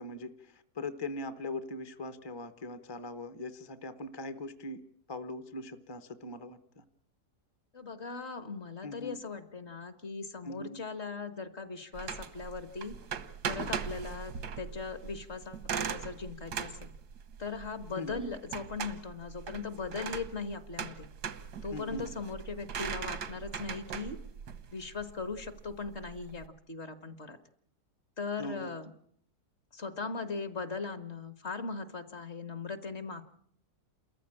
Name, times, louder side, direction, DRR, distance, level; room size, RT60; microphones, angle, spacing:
voice 1, 0.0-4.8 5.1-6.8 8.8-9.1 10.4-10.8 18.0-18.3 21.7-22.0 28.4-28.7, left 2 dB, 20° left, 10 dB, 0.8 m, -41 dB
voice 2, 7.7-13.0 13.4-16.9 17.4-21.1 21.6-24.2 24.7-27.4 28.2-28.9 29.7-33.2, left 4 dB, 45° left, 12 dB, 1.5 m, -39 dB
sound 1, 12.0-26.5, right 7 dB, 90° right, 1.8 m, -40 dB
28.5 x 14.5 x 8.7 m, 0.67 s
omnidirectional pair, 1.7 m